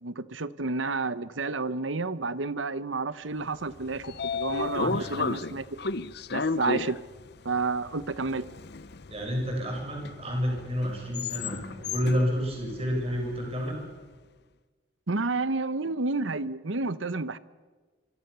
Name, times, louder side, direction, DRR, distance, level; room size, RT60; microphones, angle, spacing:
voice 1, 0.0-5.7 6.3-7.0 7.4-8.5 15.1-17.4, right 3 dB, 85° right, 1.0 m, -30 dB
Train / Sliding door, 3.6-13.8, left 4 dB, 55° left, 0.8 m, -34 dB
voice 2, 4.8-5.3 9.1-13.8, equal, 30° right, 7.2 m, -30 dB
26.0 x 25.0 x 7.0 m
head